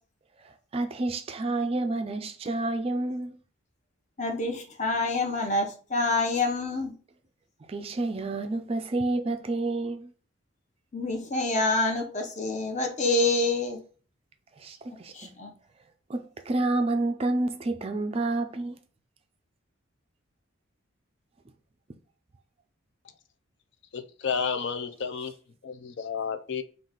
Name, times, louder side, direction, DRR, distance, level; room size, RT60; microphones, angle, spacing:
voice 1, 0.4-3.4 7.7-10.1 14.6-15.3 16.1-18.8, right 2 dB, 30° right, 0.3 m, -29 dB
voice 2, 4.2-6.9 10.9-13.8 15.1-15.5, left 2 dB, 35° left, 0.8 m, -27 dB
voice 3, 23.9-25.3 25.6-26.6, left 6 dB, 55° left, 0.4 m, -31 dB
3.9 x 2.4 x 3.8 m
head